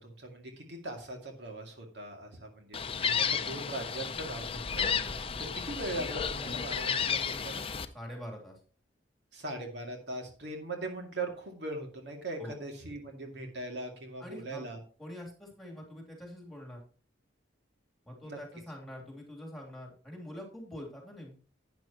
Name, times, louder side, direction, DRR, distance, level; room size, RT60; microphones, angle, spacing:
voice 1, 0.0-4.9 5.5-7.7 9.3-14.8 18.2-18.4, right 2 dB, 65° right, 2 dB, 2.4 m, -40 dB
Gull seagull, 2.7-7.9, left 6 dB, 30° left, 0.7 m, -32 dB
voice 2, 7.9-8.6 12.4-12.6 14.2-14.6 15.0-16.8 18.0-21.4, equal, ahead, -1 dB, 3.0 m, -45 dB
12.0 x 9.3 x 3.0 m, 0.39 s
head